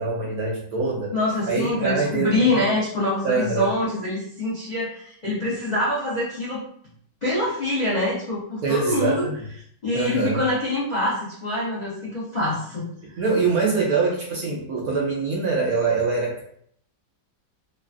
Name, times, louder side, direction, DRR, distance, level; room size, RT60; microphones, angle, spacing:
voice 1, 0.0-1.1 1.5-2.6 3.2-3.7 8.6-9.4 9.9-10.4 13.1-16.4, right 4 dB, 70° right, -3 dB, 0.9 m, -24 dB
voice 2, 1.1-6.6 7.2-9.3 9.8-12.9, left 2 dB, 50° left, -8 dB, 0.5 m, -25 dB
3.2 x 2.2 x 2.4 m, 0.66 s
omnidirectional pair, 1.9 m